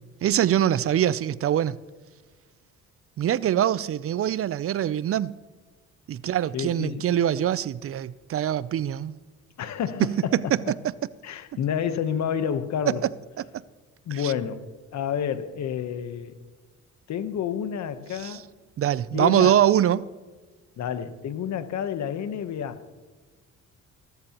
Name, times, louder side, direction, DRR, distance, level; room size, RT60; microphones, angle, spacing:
voice 1, 0.2-1.8 3.2-5.3 6.1-9.1 10.0-10.7 14.1-14.3 18.2-18.4 18.8-20.1, right 11 dB, 50° right, 0.4 m, -23 dB
voice 2, 6.5-7.1 9.6-10.7 11.2-13.0 14.1-14.6 14.9-16.4 17.1-18.4 19.1-19.6 20.8-22.8, left 8 dB, 65° left, 1.0 m, -29 dB
20.5 x 13.0 x 3.0 m
cardioid pair, 90°, 30 cm